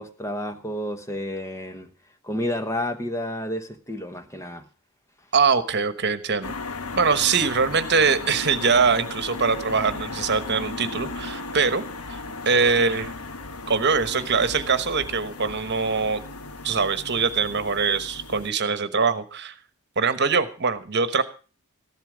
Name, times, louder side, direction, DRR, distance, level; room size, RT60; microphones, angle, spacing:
voice 1, 0.0-1.9 2.2-4.6, left 1 dB, 15° left, 9 dB, 1.0 m, -30 dB
voice 2, 5.3-6.5 6.9-13.1 13.7-16.2 16.6-19.5 20.0-21.2, right 5 dB, 50° right, 12 dB, 1.2 m, -23 dB
sound 1, 6.4-18.5, left 3 dB, 80° left, 1.2 m, -36 dB
14.5 x 11.5 x 5.1 m, 0.36 s
head